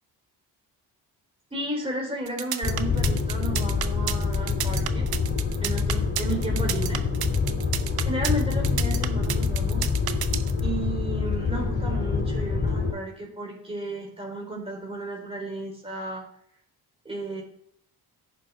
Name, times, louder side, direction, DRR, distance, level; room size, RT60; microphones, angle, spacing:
voice 1, 1.5-5.1 5.6-7.0 8.0-9.9 10.6-16.2 17.1-17.4, right 2 dB, 15° right, -2 dB, 3.5 m, -33 dB
sound 1, 2.3-10.6, right 11 dB, 70° right, 0.8 m, -31 dB
sound 2, 2.6-12.9, left 5 dB, 30° left, 2.3 m, -26 dB
14.5 x 6.0 x 3.5 m, 0.69 s
cardioid pair, 90°, 38 cm